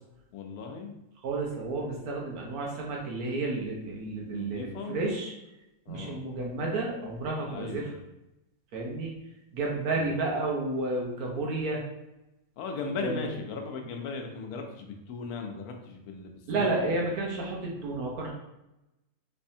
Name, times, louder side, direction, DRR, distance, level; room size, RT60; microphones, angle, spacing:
voice 1, 0.3-0.9 4.3-5.0 5.9-6.3 7.5-7.9 9.9-10.2 12.6-17.1, left 4 dB, 90° left, 3 dB, 1.1 m, -38 dB
voice 2, 1.2-5.3 5.9-7.9 8.7-9.1 9.5-11.8 13.0-13.3 16.5-18.3, right 2 dB, 90° right, -2 dB, 1.4 m, -31 dB
3.3 x 3.3 x 2.7 m, 0.91 s
omnidirectional pair, 1.5 m